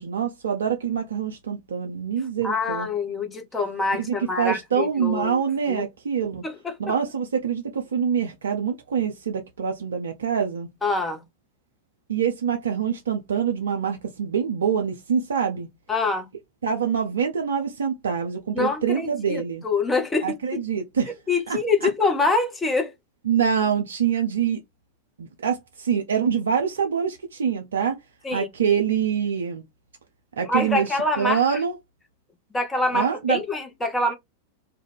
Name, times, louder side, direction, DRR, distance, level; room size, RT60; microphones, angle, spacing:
voice 1, 0.0-2.9 4.0-6.4 6.8-10.7 12.1-15.7 16.6-19.7 20.2-21.1 21.5-21.9 23.3-24.6 25.2-28.0 28.3-29.6 30.4-31.8 32.9-33.4, right 7 dB, 65° right, 0.4 m, -25 dB
voice 2, 2.4-5.4 5.7-5.8 6.4-6.7 10.8-11.2 15.9-16.3 18.5-20.4 21.3-22.9 28.2-28.5 30.5-31.4 32.5-34.1, left 3 dB, 15° left, 0.7 m, -25 dB
2.3 x 2.0 x 3.3 m
figure-of-eight pair, 90°, 0 cm